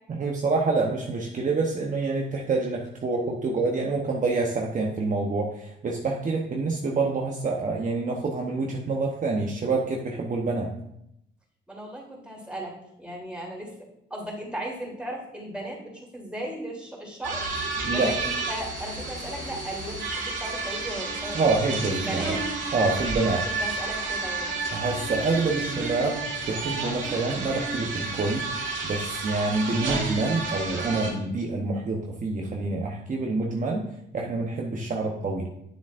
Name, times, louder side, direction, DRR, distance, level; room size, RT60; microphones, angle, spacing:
voice 1, 0.1-10.7 17.8-18.1 21.3-22.4 22.7-23.4 24.7-28.5 28.8-33.8 34.1-35.6, right 3 dB, 40° right, -1 dB, 1.0 m, -27 dB
voice 2, 11.7-13.7 14.1-17.4 17.9-21.4 21.9-22.4 23.3-24.5, right 1 dB, 5° right, -3 dB, 3.3 m, -36 dB
sound 1, 17.2-31.1, right 3 dB, 70° right, 2.1 m, -31 dB
9.2 x 7.2 x 2.6 m, 0.78 s
cardioid pair, 90°, 20 cm